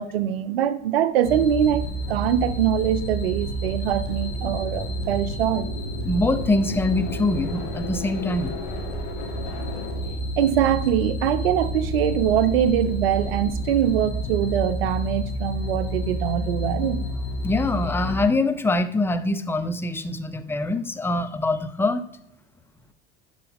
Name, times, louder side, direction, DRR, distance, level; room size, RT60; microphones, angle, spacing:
voice 1, 0.0-5.6 10.4-17.0, right 10 dB, 70° right, 0.7 m, -23 dB
sound 1, 1.2-18.3, equal, 60° left, 1.8 m, -30 dB
voice 2, 6.0-8.5 17.4-22.0, left 2 dB, 5° left, 0.5 m, -24 dB
11.0 x 4.0 x 3.6 m
figure-of-eight pair, 75°, 31 cm